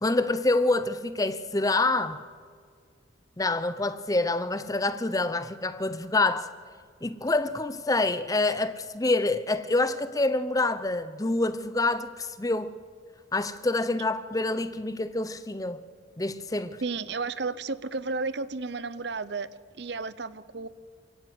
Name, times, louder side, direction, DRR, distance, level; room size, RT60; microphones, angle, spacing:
voice 1, 0.0-2.3 3.4-6.5 7.0-12.8 13.3-15.8 16.2-16.8, left 2 dB, 20° left, 0.7 m, -27 dB
voice 2, 16.8-19.5 19.8-20.7, right 4 dB, 60° right, 0.8 m, -32 dB
27.5 x 17.0 x 7.8 m
head